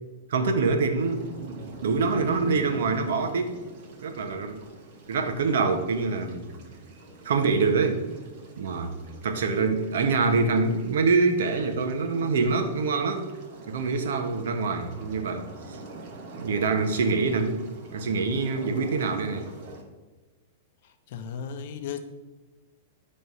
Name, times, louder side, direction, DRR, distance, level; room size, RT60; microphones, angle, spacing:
voice 1, 0.3-3.6 4.0-4.6 5.1-6.4 7.2-8.0 8.6-8.9 9.2-13.3 13.7-15.8 16.4-17.6 17.9-19.5, right 4 dB, 75° right, 1.0 m, -25 dB
sound 1, 1.0-19.8, right 2 dB, 40° right, 1.1 m, -45 dB
voice 2, 20.8-22.0, left 7 dB, 45° left, 0.6 m, -36 dB
9.2 x 3.3 x 5.4 m
supercardioid pair, 170°, 0 cm